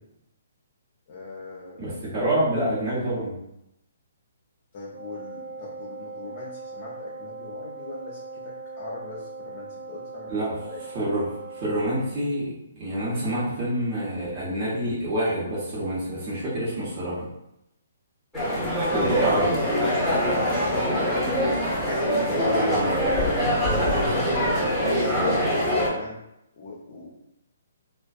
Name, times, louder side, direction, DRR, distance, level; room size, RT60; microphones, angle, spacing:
voice 1, 1.1-1.9 4.7-10.3 10.7-10.8 18.4-18.9 20.0-21.5 21.8-24.3 24.7-26.2 26.6-27.2, left 3 dB, 45° left, -4 dB, 0.6 m, -39 dB
voice 2, 1.8-3.3 10.3-10.6 10.9-17.3 18.9-19.6 22.6-22.9, right 1 dB, 35° right, -9 dB, 1.0 m, -27 dB
Wind instrument woodwind instrument, 4.9-12.2, right 3 dB, 80° right, 0.6 m, -40 dB
sound 1, 18.3-25.9, equal, 5° left, 0.9 m, -23 dB
2.5 x 2.2 x 2.3 m, 0.84 s
hypercardioid pair, 135°, 0 cm